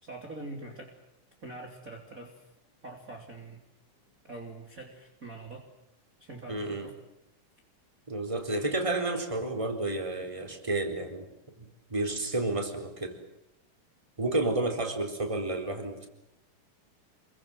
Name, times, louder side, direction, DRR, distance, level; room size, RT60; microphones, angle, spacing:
voice 1, 0.0-1.0 1.4-2.5 2.8-3.6 4.2-5.7 6.2-7.0, right 2 dB, 25° right, 1 dB, 3.5 m, -44 dB
voice 2, 6.5-6.9 8.1-11.3 11.6-13.2 14.2-16.1, right 2 dB, 10° right, 5 dB, 3.9 m, -31 dB
28.5 x 23.5 x 7.7 m, 0.85 s
omnidirectional pair, 3.6 m